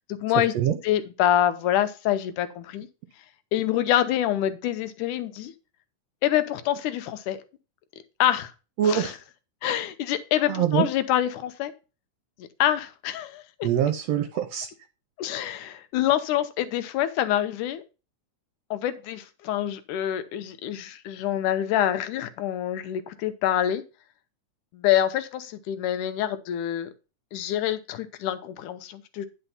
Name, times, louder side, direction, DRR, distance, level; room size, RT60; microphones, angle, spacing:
voice 1, 0.1-0.5 0.8-2.9 3.5-5.5 6.2-7.4 8.2-8.5 8.8-9.1 9.6-11.7 12.4-13.7 15.2-17.8 18.7-23.8 24.7-26.9 27.3-29.3, left 11 dB, 80° left, 2.3 m, -26 dB
voice 2, 8.8-9.1 10.5-10.9 13.6-14.7, right 10 dB, 70° right, 1.6 m, -24 dB
10.0 x 4.3 x 5.6 m
omnidirectional pair, 3.6 m